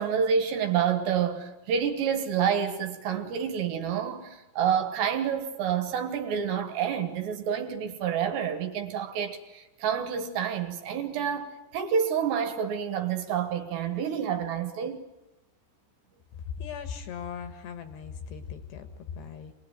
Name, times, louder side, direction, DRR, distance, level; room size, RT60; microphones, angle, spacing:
voice 1, 0.0-15.0, right 7 dB, 70° right, 7 dB, 3.2 m, -28 dB
voice 2, 16.5-19.5, left 7 dB, 70° left, 8 dB, 3.2 m, -38 dB
25.0 x 20.0 x 9.3 m, 0.99 s
omnidirectional pair, 5.7 m